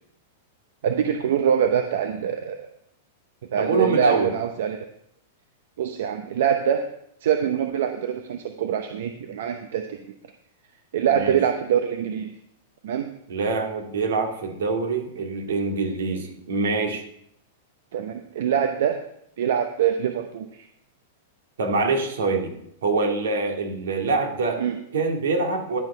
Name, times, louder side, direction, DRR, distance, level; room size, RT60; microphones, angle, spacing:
voice 1, 0.8-2.7 3.5-4.9 5.8-6.9 7.2-10.0 10.9-12.3 12.8-13.1 17.9-19.0 19.4-20.7 24.6-24.8, right 8 dB, 70° right, 6 dB, 0.8 m, -24 dB
voice 2, 3.6-4.3 11.1-11.4 13.3-17.0 21.6-22.5 22.8-24.6 24.9-25.8, right 3 dB, 90° right, 3 dB, 2.3 m, -24 dB
11.0 x 6.2 x 5.5 m, 0.74 s
supercardioid pair, 150°, 0 cm